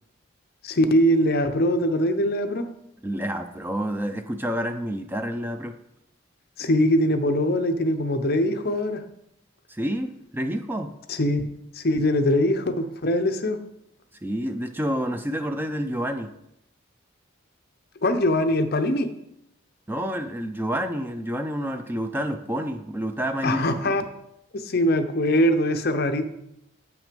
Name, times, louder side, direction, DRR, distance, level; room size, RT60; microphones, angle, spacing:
voice 1, 0.6-2.7 6.6-9.0 11.1-11.5 11.7-13.6 18.0-19.1 23.4-24.0 24.5-26.2, left 1 dB, 50° left, 8 dB, 0.7 m, -22 dB
voice 2, 3.0-5.7 9.7-10.9 14.2-16.3 19.9-23.8, equal, 10° right, 7 dB, 0.4 m, -29 dB
8.2 x 6.0 x 5.2 m, 0.80 s
head